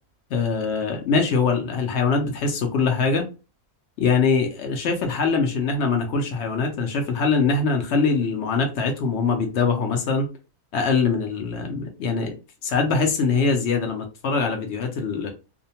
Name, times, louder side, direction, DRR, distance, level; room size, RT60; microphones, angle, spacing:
voice 1, 0.3-3.3 4.0-10.3 10.7-12.4 12.6-15.3, left 4 dB, 65° left, 0.6 m, -23 dB
2.6 x 2.1 x 2.8 m
omnidirectional pair, 1.6 m